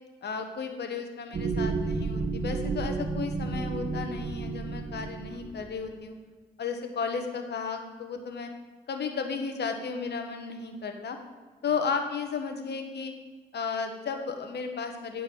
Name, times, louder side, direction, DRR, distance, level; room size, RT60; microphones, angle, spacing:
voice 1, 0.2-6.1 6.6-8.5 8.9-11.2 11.6-13.1 13.5-15.2, left 5 dB, 65° left, 5 dB, 1.3 m, -34 dB
sound 1, 1.3-5.8, right 4 dB, 50° right, 1.2 m, -32 dB
9.1 x 4.5 x 7.6 m, 1.4 s
supercardioid pair, 50°, 18 cm